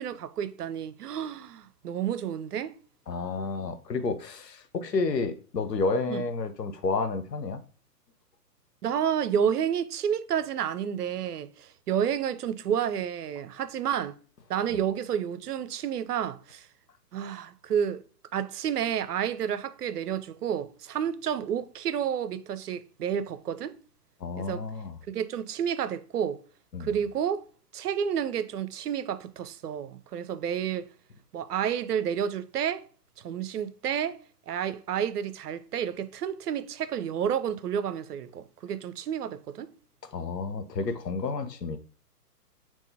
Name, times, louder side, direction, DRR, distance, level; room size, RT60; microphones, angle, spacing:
voice 1, 0.0-2.7 4.0-4.1 6.1-6.2 8.8-14.1 14.5-16.7 17.1-18.0 18.3-23.8 24.4-24.6 25.1-26.4 26.8-27.4 27.7-30.9 31.3-32.8 33.2-34.2 34.5-39.7, right 8 dB, 70° right, 0.5 m, -30 dB
voice 2, 3.1-7.6 14.7-14.8 24.2-25.0 26.7-26.9 40.1-41.8, left 4 dB, 90° left, 0.7 m, -30 dB
3.6 x 2.9 x 2.7 m
figure-of-eight pair, 130°, 48 cm